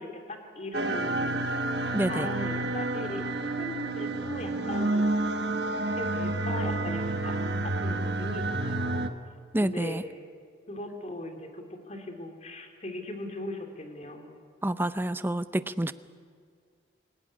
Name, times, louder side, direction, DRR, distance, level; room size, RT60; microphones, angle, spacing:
voice 1, 0.0-1.5 1.8-5.1 6.0-7.4 7.8-9.1 9.6-10.0 10.7-14.3, left 1 dB, 35° left, 4 dB, 3.0 m, -39 dB
sound 1, 0.7-9.1, right 2 dB, 60° right, 1.4 m, -29 dB
voice 2, 1.9-2.3 9.5-10.0 14.6-15.9, right 1 dB, 10° right, 13 dB, 0.5 m, -28 dB
25.5 x 17.0 x 9.9 m, 2.1 s
head